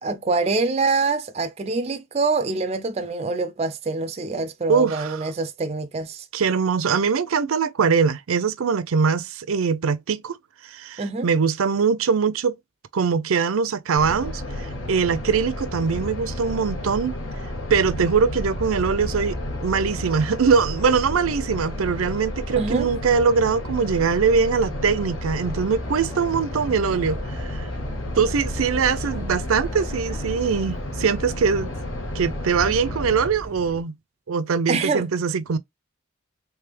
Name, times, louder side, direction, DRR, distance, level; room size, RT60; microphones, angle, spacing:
voice 1, 0.0-6.3 11.0-11.3 22.5-22.9 34.7-35.1, right 3 dB, 30° right, 0.4 m, -25 dB
voice 2, 4.7-5.2 6.3-10.4 10.6-12.5 12.9-17.1 17.7-27.7 28.1-31.7 32.1-33.9 34.3-35.6, right 5 dB, 85° right, 0.5 m, -22 dB
sound 1, 14.0-33.3, left 1 dB, 70° left, 1.4 m, -31 dB
Subway metro underground, 25.8-33.8, right 1 dB, 10° left, 0.9 m, -41 dB
3.4 x 3.2 x 3.4 m
head